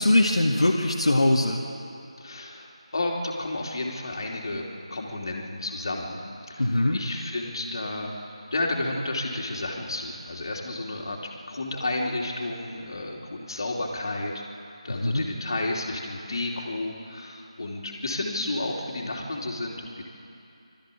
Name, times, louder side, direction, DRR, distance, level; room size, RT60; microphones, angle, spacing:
voice 1, 0.0-1.6 6.6-7.0 14.9-15.3, left 1 dB, 65° left, -2 dB, 1.8 m, -22 dB
voice 2, 2.2-6.2 6.5-8.1 8.5-11.2 11.5-20.0, left 2 dB, 45° left, -1 dB, 3.0 m, -32 dB
22.5 x 14.0 x 8.5 m, 2.7 s
figure-of-eight pair, 165°, 3 cm